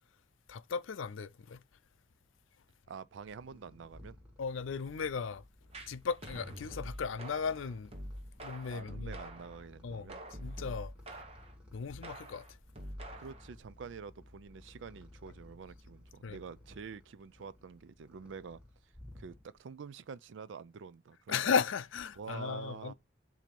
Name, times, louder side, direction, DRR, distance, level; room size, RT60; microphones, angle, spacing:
voice 1, 0.5-1.6 4.4-5.4 5.9-7.9 8.4-9.2 9.8-10.1 10.4-10.9 11.7-12.6 16.2-16.4 21.3-22.9, left 6 dB, 90° left, 0.5 m, -36 dB
voice 2, 2.9-4.2 8.7-10.2 13.2-21.5 22.2-22.9, right 5 dB, 80° right, 0.4 m, -47 dB
Purr, 3.0-19.7, left 1 dB, 5° right, 1.5 m, -57 dB
sound 1, 5.7-9.6 10.1-11.5 12.0-13.5, equal, 30° right, 1.0 m, -46 dB
7.4 x 2.7 x 5.3 m
head